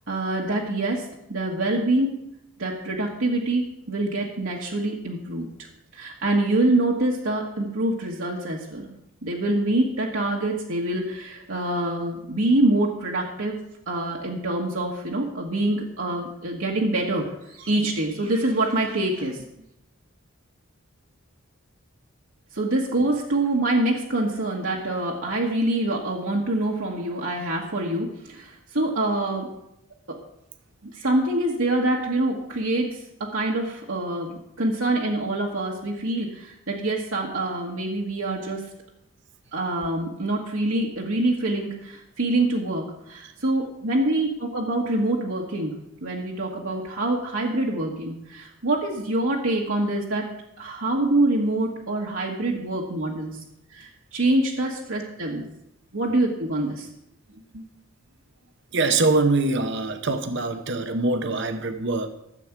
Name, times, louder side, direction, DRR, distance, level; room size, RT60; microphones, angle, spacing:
voice 1, 0.1-2.2 2.6-5.7 5.9-8.9 9.2-19.4 22.5-29.5 30.1-30.2 30.8-38.7 39.5-50.3 50.6-53.4 53.7-55.4 55.9-56.9 57.5-57.6, right 2 dB, 75° right, 1.5 m, -25 dB
voice 2, 58.7-62.1, right 3 dB, 55° right, 0.8 m, -23 dB
13.5 x 7.9 x 5.9 m
head